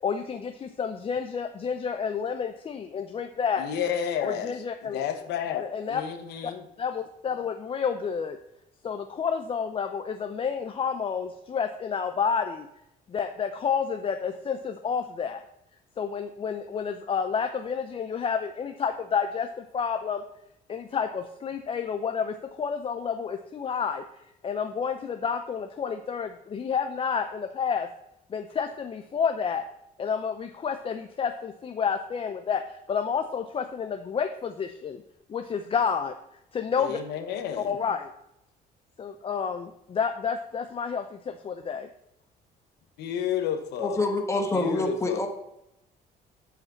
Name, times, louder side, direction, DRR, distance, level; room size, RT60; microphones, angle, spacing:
voice 1, 0.0-3.7 4.2-5.0 5.6-6.0 6.4-6.5 6.8-8.4 8.8-12.7 13.1-15.4 16.0-20.2 20.7-24.0 24.4-27.9 28.3-29.6 30.0-35.0 35.3-36.1 36.5-37.0 37.6-38.1 39.0-41.9, left 6 dB, 35° left, 7 dB, 0.5 m, -30 dB
voice 2, 3.6-4.6 4.8-6.6 36.8-37.7 43.0-44.0 44.5-45.3, left 8 dB, 80° left, 7 dB, 1.0 m, -31 dB
voice 3, 43.8-45.3, left 2 dB, 15° left, 4 dB, 1.4 m, -26 dB
8.0 x 5.0 x 7.1 m, 0.82 s
cardioid pair, 110°, 17 cm